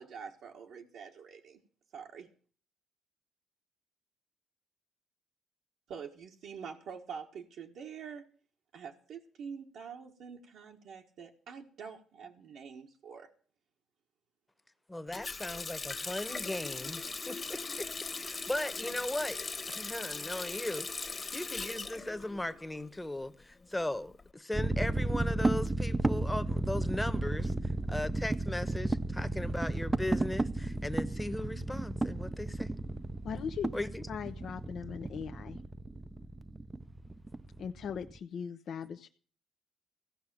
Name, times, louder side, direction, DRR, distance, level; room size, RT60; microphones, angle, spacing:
voice 1, 0.0-1.6 1.9-2.3 5.9-8.3 8.7-13.3, right 6 dB, 75° right, 1.5 m, -46 dB
voice 2, 14.9-17.9 18.2-19.4 19.7-27.5 27.9-32.7 33.7-34.1, left 1 dB, 10° left, 1.1 m, -37 dB
Water tap faucet, 15.1-22.9 23.2-24.2, left 4 dB, 30° left, 1.3 m, -39 dB
sound 1, 24.5-38.2, right 2 dB, 20° right, 0.6 m, -33 dB
voice 3, 33.2-33.7 34.1-35.6 37.6-39.1, left 7 dB, 65° left, 0.7 m, -39 dB
15.5 x 5.7 x 10.0 m
cardioid pair, 90°, 0 cm